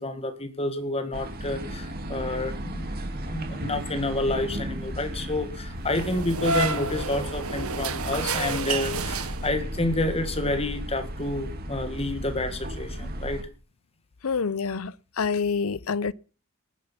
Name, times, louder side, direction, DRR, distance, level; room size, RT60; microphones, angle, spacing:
voice 1, 0.0-2.9 3.3-13.5, left 2 dB, 25° left, 1.9 m, -29 dB
sound 1, 1.1-13.4, equal, 45° right, 2.3 m, -34 dB
sound 2, 5.9-9.8, right 3 dB, 75° right, 1.4 m, -30 dB
voice 2, 14.2-16.1, left 5 dB, 70° left, 0.6 m, -27 dB
19.0 x 9.7 x 5.9 m
head